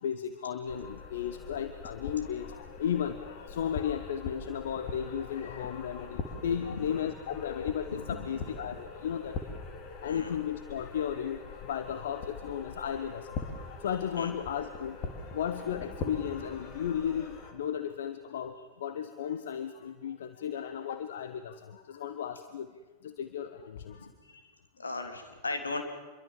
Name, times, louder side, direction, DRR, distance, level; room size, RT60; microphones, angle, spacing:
voice 1, 0.0-9.4 10.0-15.0 15.3-22.7 23.0-24.1, left 8 dB, 60° left, 10 dB, 1.3 m, -35 dB
sound 1, 0.7-17.5, left 4 dB, 40° left, 3.5 m, -42 dB
voice 2, 6.7-7.1 7.9-8.8 10.1-10.3 14.2-14.3 24.0-24.4 24.8-25.8, left 3 dB, 75° left, 6 dB, 3.2 m, -38 dB
sound 2, 15.6-18.0, equal, 5° left, 4.4 m, -55 dB
27.0 x 23.0 x 7.4 m, 1.3 s
figure-of-eight pair, 90°, 0 cm